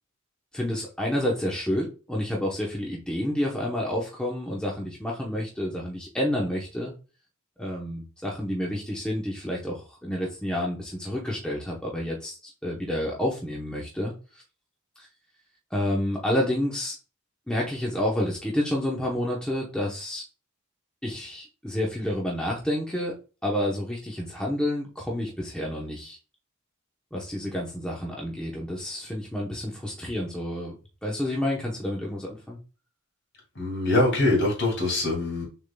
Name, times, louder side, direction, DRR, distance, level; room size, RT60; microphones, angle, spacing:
voice 1, 0.5-6.9 7.6-14.1 15.0-15.1 15.7-17.0 17.5-20.2 21.0-23.1 23.4-26.2 27.1-30.7 31.0-32.6, left 1 dB, 5° left, -3 dB, 0.8 m, -29 dB
voice 2, 33.5-35.5, left 2 dB, 55° left, 0 dB, 2.5 m, -23 dB
6.4 x 3.7 x 2.2 m, 0.34 s
head